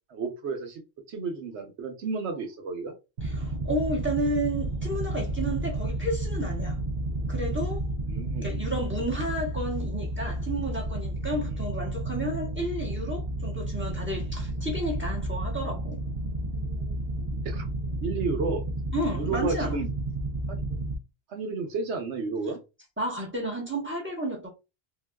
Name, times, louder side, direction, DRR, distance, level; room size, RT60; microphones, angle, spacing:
voice 1, 0.1-0.8 1.1-2.9 8.1-8.5 11.5-11.6 17.4-17.7 18.0-18.6 19.1-19.9 20.5-20.6 21.3-22.6, right 4 dB, 90° right, 1.1 m, -32 dB
voice 2, 3.2-6.8 7.3-7.9 8.4-16.0 18.9-19.8 23.0-24.5, right 1 dB, 10° right, 0.9 m, -32 dB
sound 1, 3.2-21.0, right 1 dB, 65° right, 0.8 m, -31 dB
3.7 x 2.3 x 2.2 m
omnidirectional pair, 1.1 m